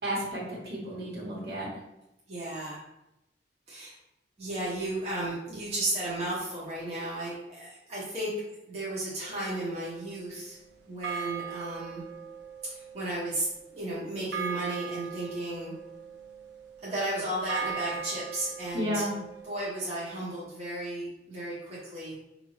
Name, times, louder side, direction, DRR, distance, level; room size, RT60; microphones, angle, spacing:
voice 1, 0.0-1.7 18.7-19.2, equal, 65° right, -5 dB, 1.5 m, -32 dB
voice 2, 2.3-2.8 3.7-4.0 4.4-8.3 8.7-10.6 10.9-12.0 12.6-15.7 16.8-19.0 19.5-22.2, right 1 dB, 35° right, -8 dB, 1.1 m, -34 dB
sound 1, 9.2-10.5 11.0-19.6, right 7 dB, 85° right, 0.5 m, -40 dB
5.2 x 2.7 x 3.1 m, 0.91 s
head